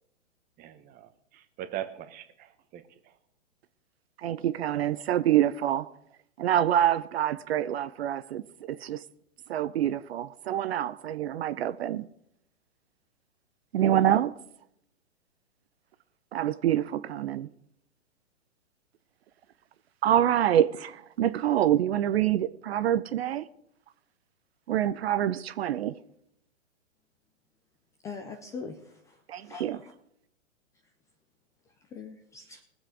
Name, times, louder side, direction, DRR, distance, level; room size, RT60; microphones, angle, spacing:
voice 1, 0.6-3.1, right 12 dB, 25° right, 1.1 m, -41 dB
voice 2, 4.2-5.9 6.4-9.0 9.5-12.1 13.7-14.3 16.3-17.5 20.0-23.4 24.7-25.9 29.3-29.8, right 11 dB, 55° right, 0.7 m, -26 dB
voice 3, 28.0-29.2 29.4-29.8 31.9-32.6, left 4 dB, 10° left, 0.4 m, -41 dB
20.5 x 7.5 x 4.9 m
hypercardioid pair, 130°, 38 cm